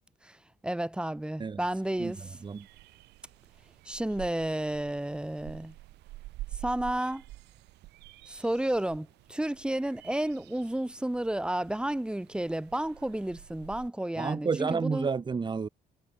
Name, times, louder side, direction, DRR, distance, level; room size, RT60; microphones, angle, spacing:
voice 1, 0.6-2.4 3.9-5.7 6.6-7.2 8.3-15.1, right 1 dB, 5° right, 3.6 m, -31 dB
sound 1, 1.6-13.9, right 18 dB, 85° right, 7.5 m, -48 dB
voice 2, 14.2-15.7, right 5 dB, 25° right, 2.0 m, -30 dB
cardioid pair, 110°, 17 cm